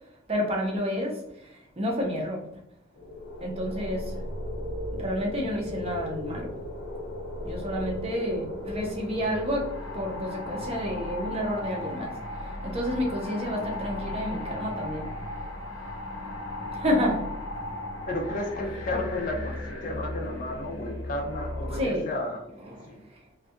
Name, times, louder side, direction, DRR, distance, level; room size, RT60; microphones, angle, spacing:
voice 1, 0.3-2.5 3.4-4.2 4.9-6.5 7.4-15.1 16.7-17.3 21.7-22.1 22.6-23.2, equal, 30° right, 0 dB, 0.5 m, -30 dB
sound 1, 3.0-21.8, left 1 dB, 80° left, 0.8 m, -36 dB
voice 2, 18.1-22.4 22.9-23.0, left 1 dB, 40° left, 1 dB, 0.4 m, -32 dB
2.6 x 2.2 x 2.4 m, 0.80 s
head